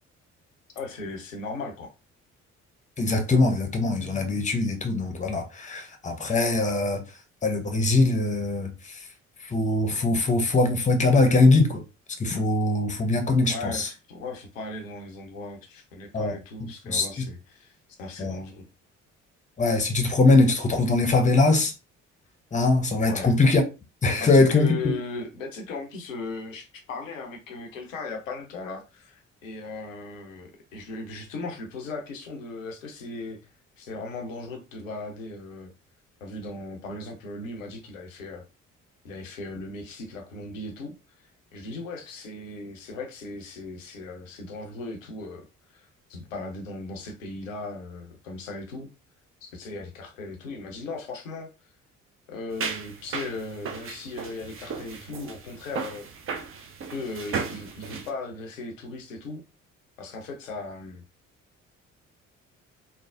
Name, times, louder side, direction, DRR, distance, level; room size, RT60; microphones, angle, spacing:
voice 1, 0.8-1.9 13.5-18.7 23.1-23.3 24.2-33.4 33.8-35.7 36.2-38.4 39.0-40.9 41.5-45.5 45.7-48.9 49.4-51.5 52.3-56.1 56.9-59.4 60.0-61.0, left 3 dB, 80° left, 0.7 m, -37 dB
voice 2, 3.0-7.0 7.4-9.0 9.4-11.8 12.2-13.9 16.1-16.4 16.8-17.3 18.2-18.4 19.6-21.7 22.5-23.6 24.0-24.7, left 3 dB, 20° left, 0.7 m, -22 dB
sound 1, 52.5-58.1, right 5 dB, 35° right, 0.5 m, -35 dB
3.2 x 2.0 x 2.4 m
figure-of-eight pair, 45°, 39 cm